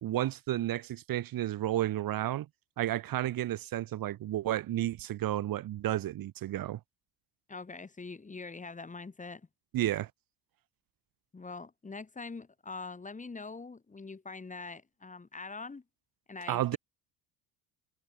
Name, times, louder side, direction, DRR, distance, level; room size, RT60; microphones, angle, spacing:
voice 1, 0.0-2.5 2.8-6.8 9.7-10.1 16.5-16.8, right 13 dB, 55° right, 2.2 m, -32 dB
voice 2, 7.5-9.4 11.3-15.8 16.3-16.8, left 4 dB, 20° left, 3.0 m, -43 dB
supercardioid pair, 100°, 40 cm